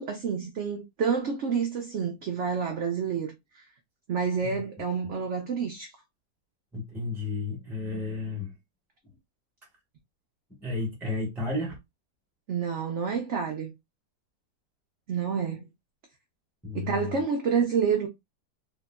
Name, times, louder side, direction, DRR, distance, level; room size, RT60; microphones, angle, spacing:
voice 1, 0.0-3.6 4.1-5.9 12.5-13.7 15.1-15.7 16.7-18.1, right 6 dB, 65° right, 0.7 m, -28 dB
voice 2, 6.7-8.5 10.6-11.8 16.6-17.2, left 3 dB, ahead, 1.1 m, -32 dB
3.9 x 2.9 x 2.2 m
omnidirectional pair, 1.8 m